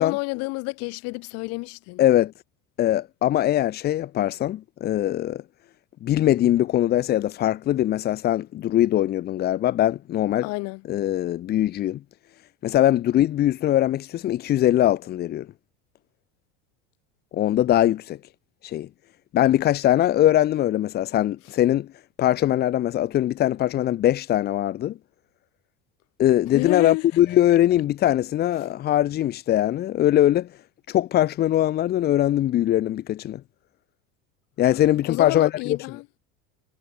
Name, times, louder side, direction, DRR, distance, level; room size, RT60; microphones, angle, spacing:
voice 1, 0.0-2.0 10.4-10.8 26.5-27.0 35.0-36.0, left 27 dB, 55° left, 4.5 m, -29 dB
voice 2, 2.0-2.3 2.8-5.4 6.0-10.5 10.9-12.0 12.6-15.5 17.3-18.2 18.6-18.9 19.3-21.9 22.2-25.0 26.2-30.5 30.9-33.4 34.6-35.8, left 12 dB, 35° left, 2.0 m, -21 dB
cardioid pair, 160°, 29 cm